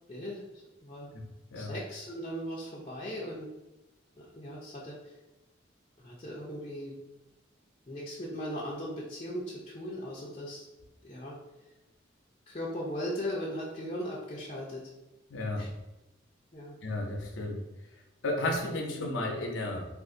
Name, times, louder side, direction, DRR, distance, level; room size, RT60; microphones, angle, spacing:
voice 1, 0.1-0.5 0.8-1.1 1.5-3.5 4.2-5.0 6.0-6.9 7.9-10.7 11.0-11.3 12.5-14.8 15.5-15.7 16.5-16.8, equal, 30° left, -5 dB, 0.5 m, -38 dB
voice 2, 15.3-15.6 16.8-17.6 18.2-19.8, left 1 dB, 90° left, 1 dB, 0.6 m, -33 dB
2.5 x 2.5 x 3.7 m, 1.0 s
head